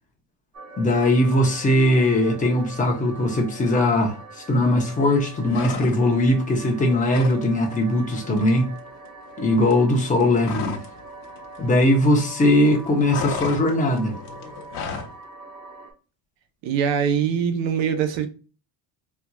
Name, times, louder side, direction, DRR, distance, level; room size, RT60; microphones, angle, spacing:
sound 1, 0.5-15.9, right 3 dB, 45° right, 1.5 m, -42 dB
voice 1, 0.8-8.7 9.4-10.8 11.6-14.2, left 1 dB, 20° left, 0.8 m, -20 dB
sound 2, 5.5-6.3 6.6-7.4 7.7-7.9 8.2-11.0 11.2-12.3 12.6-15.2, left 5 dB, 65° left, 1.0 m, -34 dB
voice 2, 16.6-18.3, right 7 dB, 80° right, 0.9 m, -23 dB
4.4 x 2.8 x 2.3 m
cardioid pair, 165°, 43 cm